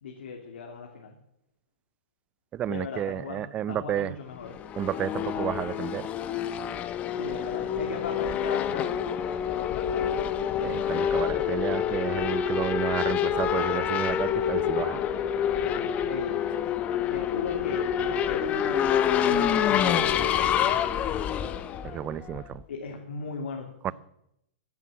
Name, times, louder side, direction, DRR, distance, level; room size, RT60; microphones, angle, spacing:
voice 1, 0.0-1.1 2.7-4.5 7.1-10.3 15.6-16.4 17.1-20.5 22.7-23.9, left 5 dB, 80° left, 2.8 m, -39 dB
voice 2, 2.5-4.1 4.8-6.1 10.6-15.0 21.8-22.6 23.8-23.9, right 11 dB, 20° right, 0.5 m, -31 dB
Race car auto racing / Accelerating revving vroom, 4.4-22.6, left 9 dB, 20° left, 0.9 m, -27 dB
14.5 x 11.0 x 7.3 m
hypercardioid pair, 150°, 6 cm